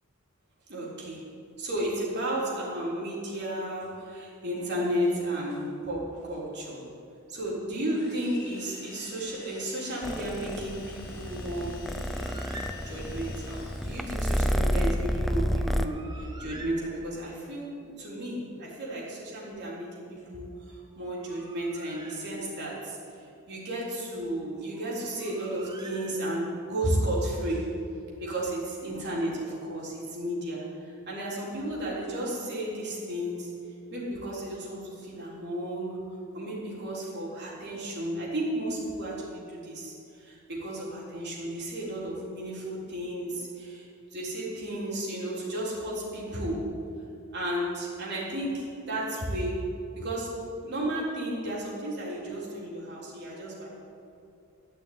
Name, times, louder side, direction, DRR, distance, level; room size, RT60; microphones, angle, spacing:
voice 1, 0.7-1.2 1.6-6.8 7.3-11.7 12.9-23.0 23.5-27.7 28.2-33.5 33.9-36.0 36.3-43.9 44.1-46.6 47.3-49.6 50.0-50.3 50.6-53.7, right 1 dB, 50° right, -5 dB, 3.7 m, -33 dB
sound 1, 7.9-14.6, left 3 dB, 45° left, 1.9 m, -49 dB
Purr, 10.0-15.9, equal, ahead, 0.5 m, -30 dB
Bird, 12.2-13.3 15.4-17.5 20.9-22.8 24.7-26.7, right 1 dB, 20° right, 0.8 m, -48 dB
12.5 x 6.3 x 9.4 m, 2.6 s
head